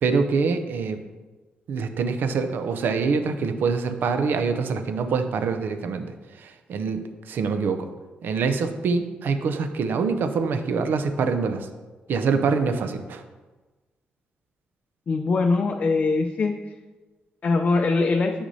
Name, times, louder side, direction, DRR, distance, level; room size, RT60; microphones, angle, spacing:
voice 1, 0.0-1.0 1.7-7.9 8.2-11.7 12.1-13.2, right 5 dB, 75° right, 8 dB, 0.5 m, -25 dB
voice 2, 15.1-16.5 17.4-18.3, left 3 dB, 45° left, 3 dB, 0.5 m, -22 dB
8.0 x 6.0 x 2.7 m, 1.3 s
cardioid pair, 85°, 3 cm